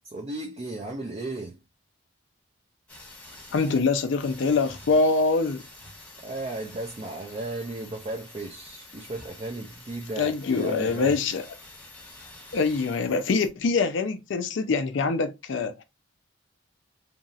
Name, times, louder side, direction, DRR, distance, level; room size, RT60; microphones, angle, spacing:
voice 1, 0.0-1.6 6.2-11.2, right 2 dB, 30° right, 0.4 m, -35 dB
sound 1, 2.9-13.5, left 2 dB, 5° left, 0.8 m, -48 dB
voice 2, 3.5-5.6 10.2-11.4 12.5-15.7, left 4 dB, 60° left, 0.4 m, -24 dB
2.8 x 2.6 x 2.4 m
head